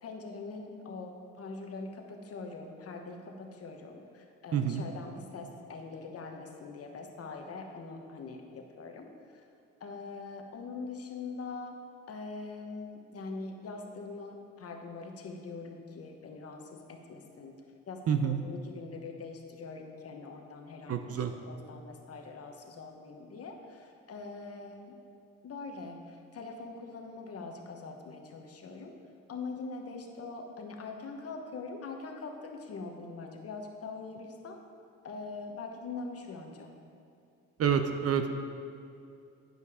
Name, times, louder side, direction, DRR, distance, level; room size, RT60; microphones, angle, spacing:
voice 1, 0.0-9.1 9.3-9.4 9.8-11.8 12.1-17.5 17.9-24.9 25.4-28.9 29.3-34.6 35.0-36.7, left 4 dB, 50° left, 3 dB, 1.2 m, -43 dB
voice 2, 4.5-4.8 18.1-18.4 20.9-21.3 37.6-38.3, right 8 dB, 55° right, 7 dB, 0.6 m, -28 dB
10.5 x 5.3 x 4.9 m, 2.6 s
cardioid pair, 90°, 30 cm